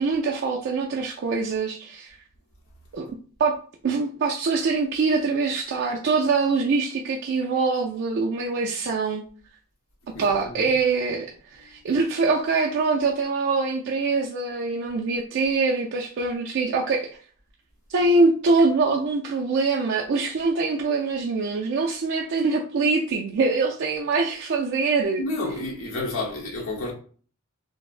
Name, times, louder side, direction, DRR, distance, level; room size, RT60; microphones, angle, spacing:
voice 1, 0.0-2.2 2.9-3.1 3.4-3.5 3.8-9.2 10.2-17.1 17.9-25.3, right 4 dB, 55° right, 0.4 m, -24 dB
voice 2, 10.1-10.7 25.2-26.9, left 2 dB, 70° left, 1.0 m, -30 dB
4.1 x 2.0 x 2.4 m
head